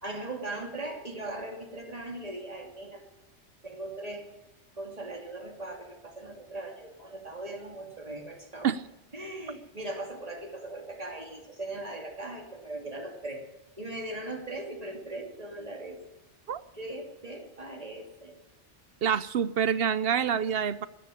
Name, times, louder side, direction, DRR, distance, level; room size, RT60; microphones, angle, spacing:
voice 1, 0.0-3.0 3.6-4.3 4.8-8.7 9.1-13.5 13.8-16.0 16.7-18.3, right 2 dB, 30° right, 1 dB, 2.9 m, -39 dB
voice 2, 19.0-20.9, right 8 dB, 60° right, 15 dB, 0.8 m, -27 dB
13.0 x 10.5 x 10.0 m, 1.0 s
omnidirectional pair, 1.2 m